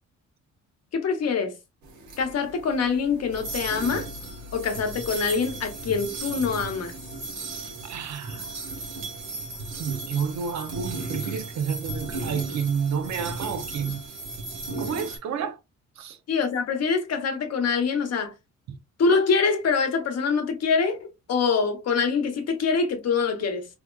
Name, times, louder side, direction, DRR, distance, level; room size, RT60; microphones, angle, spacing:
voice 1, 0.9-1.5 2.2-4.1 4.5-6.9 16.3-18.3 19.0-23.7, left 5 dB, 55° left, 1.0 m, -24 dB
sound 1, 1.8-15.2, right 2 dB, 90° right, 1.2 m, -35 dB
voice 2, 7.8-8.5 9.8-14.0 14.8-15.6 16.0-16.2, right 6 dB, 65° right, 0.7 m, -30 dB
3.5 x 2.9 x 2.3 m
cardioid pair, 90°, 30 cm